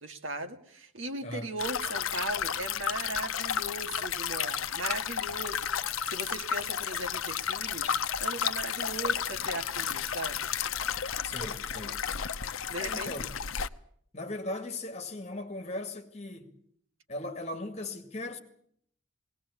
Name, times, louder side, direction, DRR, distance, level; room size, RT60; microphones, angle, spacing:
voice 1, 0.0-7.9 8.2-10.5 12.7-13.1, right 2 dB, 75° right, 2.2 m, -38 dB
voice 2, 1.2-1.5 11.2-12.0 12.7-13.2 14.1-16.5 17.1-18.4, left 2 dB, 30° left, 2.1 m, -38 dB
sound 1, 1.6-13.7, left 8 dB, 85° left, 0.8 m, -32 dB
19.5 x 18.5 x 8.4 m
head